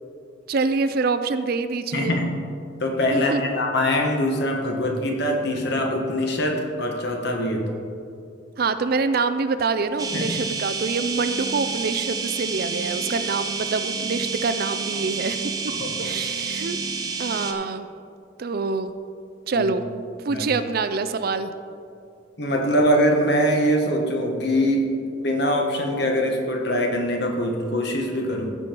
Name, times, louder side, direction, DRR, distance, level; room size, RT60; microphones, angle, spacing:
voice 1, 0.5-2.2 3.1-3.4 8.6-15.4 16.0-16.8 17.2-17.9 18.4-18.9 19.5-19.8 20.2-21.5, right 4 dB, 50° right, 11 dB, 0.4 m, -25 dB
voice 2, 1.9-2.3 2.8-7.7 10.1-10.4 15.8-16.1 19.5-19.7 20.3-20.5 22.4-28.5, equal, 60° left, 2 dB, 1.4 m, -23 dB
sound 1, 10.0-17.5, right 4 dB, 20° right, 0.7 m, -29 dB
15.0 x 5.5 x 4.5 m, 2.5 s
head